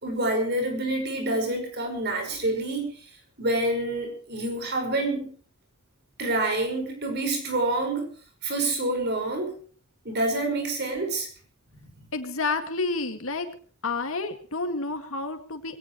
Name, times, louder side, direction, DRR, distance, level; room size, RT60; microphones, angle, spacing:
voice 1, 0.0-2.9 3.4-5.3 6.2-8.1 8.4-9.5 10.0-11.3 11.8-11.9, right 2 dB, 50° right, 4 dB, 5.6 m, -27 dB
voice 2, 12.1-13.5 13.8-15.8, left 3 dB, 75° left, 7 dB, 2.2 m, -29 dB
21.5 x 17.5 x 3.2 m, 0.42 s
head